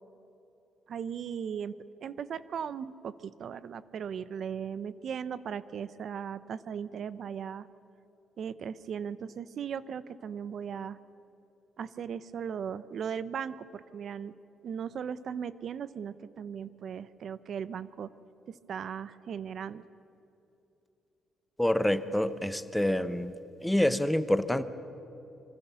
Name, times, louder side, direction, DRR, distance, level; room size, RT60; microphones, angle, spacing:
voice 1, 0.9-7.7 8.4-11.0 11.8-14.4 14.6-18.1 18.5-19.9, right 7 dB, 50° right, 15 dB, 0.7 m, -37 dB
voice 2, 21.6-23.3 23.6-24.6, left 1 dB, 5° left, 12 dB, 0.8 m, -27 dB
26.5 x 25.0 x 7.0 m, 2.9 s
cardioid pair, 155°, 0 cm